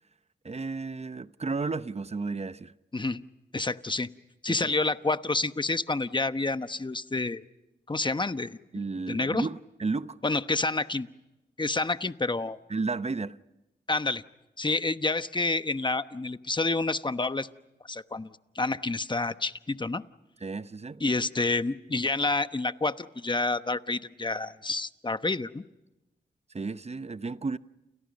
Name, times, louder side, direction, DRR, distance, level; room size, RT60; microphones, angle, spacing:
voice 1, 0.4-2.7 4.5-4.7 8.7-10.2 12.7-13.4 20.4-21.0 26.5-27.6, right 4 dB, 35° right, 0.8 m, -33 dB
voice 2, 3.5-4.1 4.4-7.4 7.9-8.6 9.1-9.5 10.2-11.1 11.6-12.6 13.9-14.2 14.6-17.5 17.9-18.3 18.5-20.0 21.0-25.6, left 3 dB, 25° left, 1.0 m, -28 dB
30.0 x 29.0 x 5.3 m
cardioid pair, 60°, 18 cm